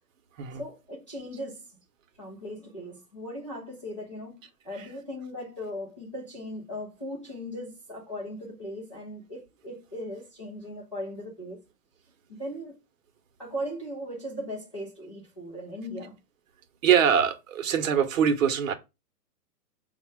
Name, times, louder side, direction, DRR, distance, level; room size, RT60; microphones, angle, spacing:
voice 1, 0.6-1.8 2.2-4.4 4.6-11.6 12.3-12.7 13.4-16.2, equal, 20° left, 0.4 m, -38 dB
voice 2, 16.8-18.7, right 8 dB, 55° right, 0.8 m, -23 dB
5.2 x 2.2 x 4.6 m
hypercardioid pair, 155°, 48 cm